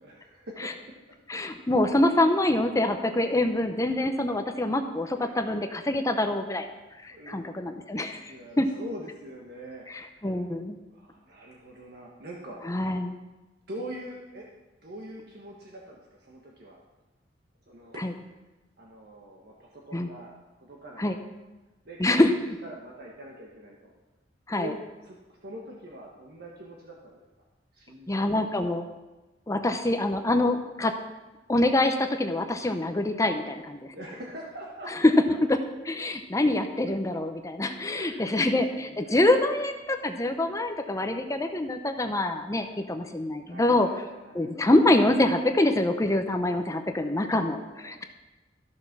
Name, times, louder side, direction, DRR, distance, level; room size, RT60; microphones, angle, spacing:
voice 1, 0.0-1.6 5.1-5.6 7.1-7.8 8.2-10.3 10.9-12.9 13.7-14.5 14.8-16.8 17.7-18.1 18.8-20.3 20.6-21.1 21.8-22.2 22.6-23.9 24.5-24.8 25.0-27.2 27.7-28.3 28.6-28.8 33.9-34.9 37.8-39.9 43.5-44.5 47.2-48.0, right 1 dB, 60° right, -2 dB, 1.4 m, -44 dB
voice 2, 1.3-6.7 7.0-8.7 10.2-10.8 12.7-13.1 18.0-18.1 19.9-20.1 21.0-21.1 22.0-22.6 24.5-24.7 28.1-28.9 29.5-30.9 31.5-33.8 35.5-35.6 35.9-43.9 44.3-48.0, left 1 dB, 20° left, 7 dB, 0.7 m, -25 dB
14.0 x 6.5 x 6.0 m, 1.1 s
head